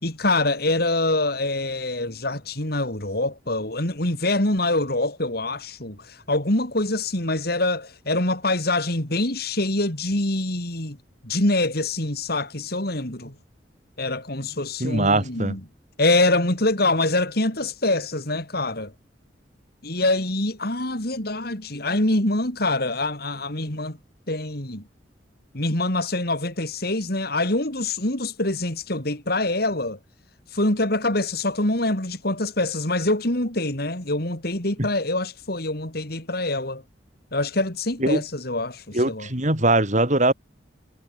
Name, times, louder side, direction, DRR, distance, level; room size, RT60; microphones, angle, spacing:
voice 1, 0.0-11.0 11.2-13.3 14.0-15.6 16.0-18.9 19.8-24.0 24.3-24.8 25.5-30.0 30.5-36.8 37.3-39.3, left 2 dB, 55° left, 4.5 m, -25 dB
voice 2, 14.8-15.5 34.8-34.9 38.0-38.2 38.9-40.3, right 2 dB, 40° right, 4.8 m, -21 dB
head